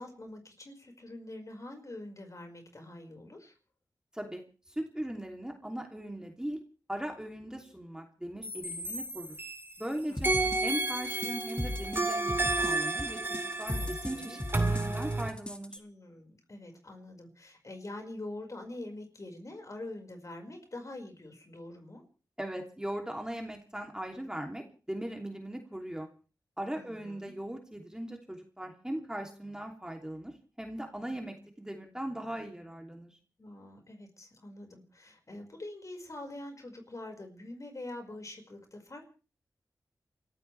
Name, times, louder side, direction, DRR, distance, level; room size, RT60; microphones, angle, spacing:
voice 1, 0.0-3.5 10.1-10.6 13.8-14.4 15.7-22.0 26.7-27.3 33.4-39.1, left 2 dB, 45° left, 3 dB, 5.3 m, -45 dB
voice 2, 4.7-6.6 6.9-9.4 9.8-10.3 10.6-15.8 22.4-26.1 26.6-33.2, right 1 dB, 10° right, 2 dB, 3.0 m, -39 dB
sound 1, 8.4-9.8 10.2-15.3, right 2 dB, 30° right, 2.6 m, -31 dB
sound 2, 10.2-15.8, left 1 dB, 15° left, 2.0 m, -38 dB
28.5 x 14.0 x 3.4 m, 0.37 s
cardioid pair, 55°, 7 cm